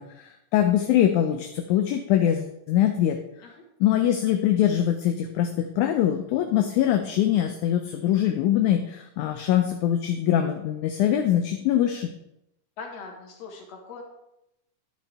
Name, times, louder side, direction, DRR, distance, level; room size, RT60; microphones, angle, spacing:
voice 1, 0.0-3.2 3.8-12.1, left 11 dB, 80° left, 5 dB, 1.9 m, -23 dB
voice 2, 12.8-14.0, left 4 dB, 60° left, 2 dB, 2.3 m, -41 dB
10.0 x 8.4 x 3.4 m, 0.87 s
omnidirectional pair, 3.8 m